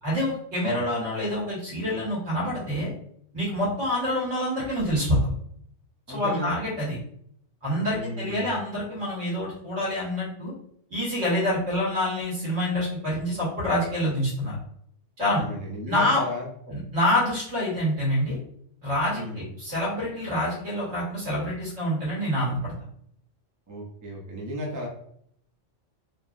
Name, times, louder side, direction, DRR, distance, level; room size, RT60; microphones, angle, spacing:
voice 1, 0.0-2.9 3.3-5.2 6.1-7.0 7.6-10.5 10.9-14.6 15.2-15.4 15.9-16.2 16.7-18.4 18.8-22.7, left 1 dB, 85° right, -6 dB, 1.9 m, -26 dB
voice 2, 6.1-6.6 7.9-8.6 15.3-16.7 19.1-19.5 23.7-24.9, left 1 dB, 25° right, -2 dB, 0.4 m, -35 dB
3.6 x 2.0 x 2.5 m, 0.68 s
omnidirectional pair, 1.3 m